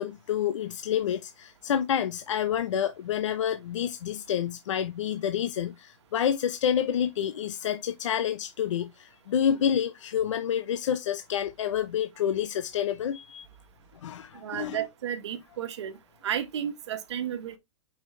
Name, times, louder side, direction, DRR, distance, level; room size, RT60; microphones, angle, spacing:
voice 1, 0.0-13.5 14.0-14.8, left 9 dB, 70° left, 0.7 m, -28 dB
voice 2, 14.3-15.9 16.2-17.6, right 9 dB, 60° right, 1.3 m, -32 dB
5.9 x 5.6 x 3.2 m
supercardioid pair, 180°, 16 cm